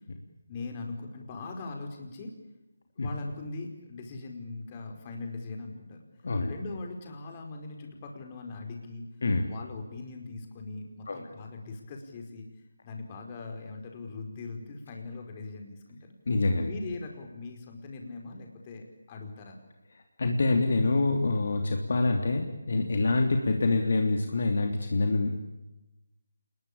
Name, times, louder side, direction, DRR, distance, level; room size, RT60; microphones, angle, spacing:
voice 1, 0.5-2.3 3.0-6.0 6.4-9.0 9.4-12.4 12.8-16.1 16.7-19.6, left 3 dB, 25° left, 3 dB, 5.1 m, -40 dB
voice 2, 16.3-16.7 20.2-25.4, left 3 dB, 50° left, 4 dB, 3.1 m, -26 dB
28.5 x 21.0 x 8.8 m, 1.0 s
figure-of-eight pair, 155°, 0 cm